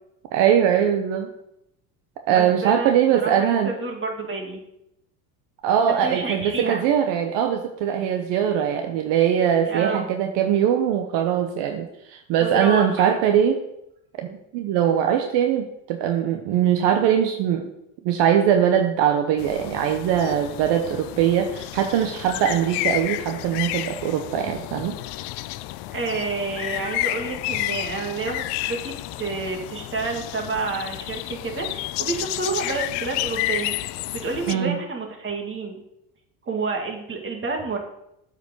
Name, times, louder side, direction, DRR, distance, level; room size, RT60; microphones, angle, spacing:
voice 1, 0.3-1.3 2.3-3.7 5.6-13.6 14.2-17.7 18.0-25.0 34.5-34.8, right 9 dB, 60° right, 5 dB, 1.1 m, -21 dB
voice 2, 2.3-4.6 5.9-6.8 9.7-10.1 12.4-13.2 25.9-33.7 34.1-35.8 36.5-37.8, right 3 dB, 25° right, 1 dB, 2.5 m, -29 dB
sound 1, 19.4-34.5, left 16 dB, 55° left, 0.5 m, -31 dB
8.0 x 5.2 x 6.7 m, 0.81 s
supercardioid pair, 95°, 47 cm